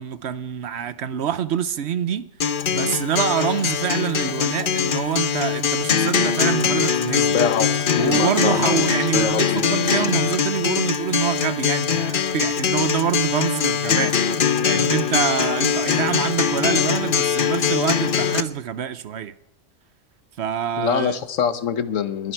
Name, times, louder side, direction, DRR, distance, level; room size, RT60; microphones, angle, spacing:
voice 1, 0.0-2.3 2.7-7.4 8.0-19.3 20.4-21.1, right 9 dB, 65° right, 0.9 m, -26 dB
Acoustic guitar, 2.4-18.4, left 7 dB, 50° left, 0.8 m, -22 dB
voice 2, 7.3-8.8 9.1-9.7 20.8-22.3, left 7 dB, 90° left, 1.3 m, -24 dB
21.5 x 10.5 x 4.6 m
omnidirectional pair, 1.3 m